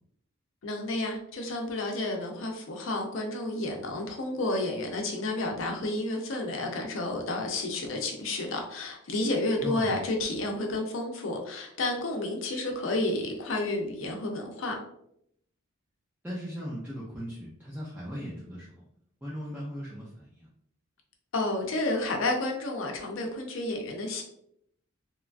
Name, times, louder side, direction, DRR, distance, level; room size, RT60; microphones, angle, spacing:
voice 1, 0.6-14.8 21.3-24.2, left 2 dB, 65° left, 2 dB, 0.5 m, -31 dB
voice 2, 9.6-10.0 16.2-18.8 19.2-20.5, equal, 10° right, -7 dB, 0.4 m, -38 dB
2.9 x 2.3 x 2.4 m, 0.73 s
head